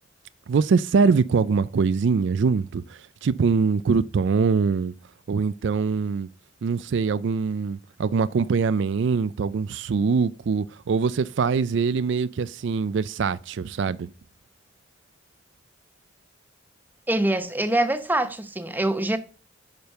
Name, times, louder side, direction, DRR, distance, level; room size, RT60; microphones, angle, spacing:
voice 1, 0.5-4.9 5.3-6.3 6.6-14.1, right 5 dB, 65° right, 0.4 m, -23 dB
voice 2, 17.1-19.2, right 1 dB, 10° right, 0.9 m, -24 dB
8.9 x 5.2 x 6.5 m
head